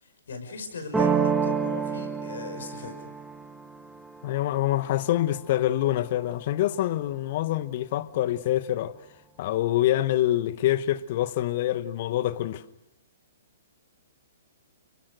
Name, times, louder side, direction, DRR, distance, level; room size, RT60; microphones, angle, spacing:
voice 1, 0.0-3.1, left 4 dB, 70° left, 5.8 m, -39 dB
sound 1, 0.9-6.5, right 4 dB, 5° right, 1.3 m, -31 dB
sound 2, 1.0-2.9, right 18 dB, 45° right, 2.0 m, -31 dB
voice 2, 4.2-8.9 9.4-12.6, left 13 dB, 50° left, 1.1 m, -26 dB
30.0 x 24.0 x 6.6 m
figure-of-eight pair, 120°, 0 cm